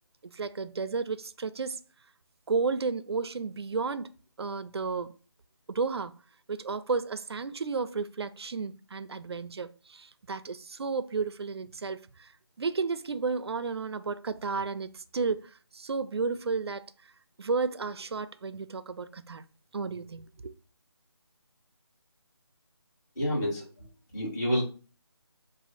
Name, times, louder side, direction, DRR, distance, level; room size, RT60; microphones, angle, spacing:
voice 1, 0.2-1.8 2.5-4.1 4.4-5.1 5.7-6.1 6.5-12.3 12.6-15.4 15.7-16.8 17.4-19.4 19.7-20.5, right 4 dB, 70° right, 0.4 m, -32 dB
voice 2, 23.2-23.6 24.1-24.6, equal, 40° left, 2.0 m, -28 dB
3.4 x 2.5 x 4.1 m
figure-of-eight pair, 175°, 14 cm